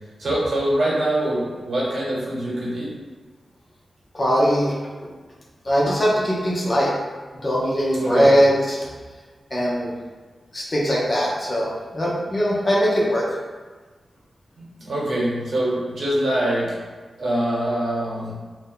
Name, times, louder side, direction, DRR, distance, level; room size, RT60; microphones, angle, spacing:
voice 1, 0.2-2.9 8.0-8.3 14.6-16.7 17.2-18.3, right 1 dB, 70° right, -6 dB, 1.1 m, -24 dB
voice 2, 4.1-4.7 5.6-6.9 7.4-8.8 9.5-9.9 10.5-13.2, equal, 30° left, -5 dB, 0.7 m, -20 dB
2.6 x 2.2 x 3.8 m, 1.4 s
wide cardioid pair, 120°, 0 cm